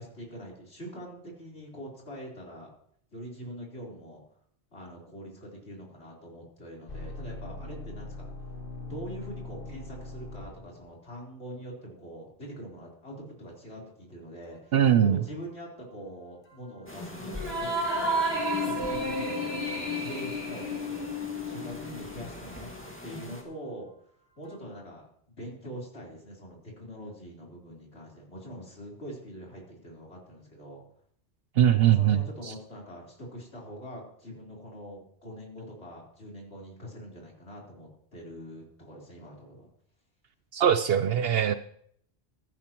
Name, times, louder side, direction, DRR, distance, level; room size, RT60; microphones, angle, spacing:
voice 1, 0.0-2.7 3.1-4.2 4.7-8.3 8.8-18.2 18.6-22.7 23.0-23.9 24.4-25.1 25.4-30.8 31.8-39.7, equal, 80° left, -3 dB, 4.3 m, -44 dB
Futuristic High Tension Synth Only, 6.9-10.9 16.5-17.9 18.2-18.4 24.5-24.6, left 2 dB, 55° left, 1.8 m, -42 dB
voice 2, 14.7-15.2 31.6-32.5 40.5-41.5, right 10 dB, 70° right, 11 dB, 0.8 m, -22 dB
sound 1, 16.9-23.4, left 1 dB, 10° left, 2.0 m, -42 dB
sound 2, 17.4-22.1, equal, 25° right, 4.1 m, -31 dB
16.0 x 13.5 x 3.0 m, 0.65 s
omnidirectional pair, 1.1 m